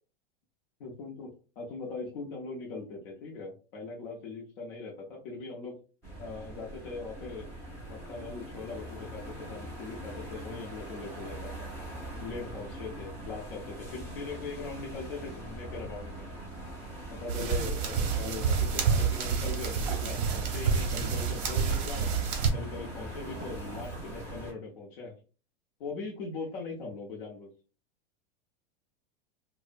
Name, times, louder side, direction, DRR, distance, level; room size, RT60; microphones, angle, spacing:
voice 1, 0.8-5.8 6.2-7.5 7.9-11.7 12.1-16.3 17.1-22.1 22.5-25.2 25.8-27.5, left 4 dB, 60° left, -2 dB, 0.6 m, -40 dB
sound 1, 6.0-24.5, right 1 dB, 10° left, 0.4 m, -42 dB
sound 2, 17.3-22.5, right 6 dB, 50° right, 0.6 m, -28 dB
2.5 x 2.0 x 2.4 m, 0.35 s
supercardioid pair, 165°, 29 cm